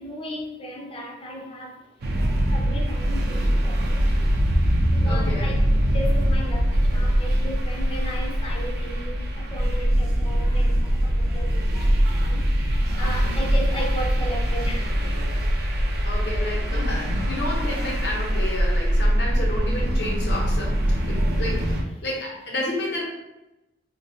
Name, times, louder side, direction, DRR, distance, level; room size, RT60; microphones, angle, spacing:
voice 1, 0.0-1.8 2.4-4.0 4.9-15.0, equal, 30° left, -1 dB, 0.6 m, -36 dB
sound 1, 2.0-21.8, equal, 60° right, 0.5 m, -22 dB
voice 2, 5.0-5.5 13.0-13.3 16.0-23.0, left 1 dB, 65° left, -1 dB, 0.9 m, -31 dB
3.5 x 2.2 x 2.7 m, 0.95 s
head